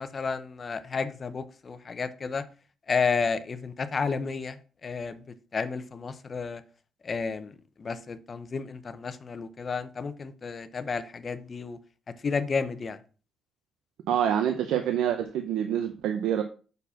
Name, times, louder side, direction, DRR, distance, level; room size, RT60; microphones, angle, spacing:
voice 1, 0.0-2.4 2.9-5.2 5.5-6.6 7.0-11.8 12.2-13.0, left 5 dB, 40° left, 0.8 m, -31 dB
voice 2, 14.1-16.4, right 9 dB, 85° right, 0.8 m, -26 dB
6.6 x 4.6 x 5.7 m
cardioid pair, 90°, 0 cm